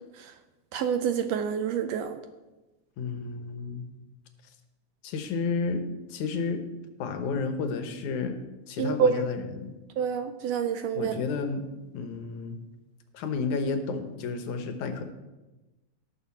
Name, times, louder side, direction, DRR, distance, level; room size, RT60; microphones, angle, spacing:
voice 1, 0.7-2.2 8.8-9.2 10.0-11.2, right 7 dB, 80° right, 8 dB, 1.6 m, -27 dB
voice 2, 3.0-3.9 5.0-5.8 6.1-6.6 7.0-8.4 8.7-9.8 10.9-11.7 11.9-12.6 13.1-15.0, left 4 dB, 85° left, 7 dB, 2.5 m, -31 dB
18.0 x 6.8 x 4.2 m, 1.1 s
omnidirectional pair, 3.3 m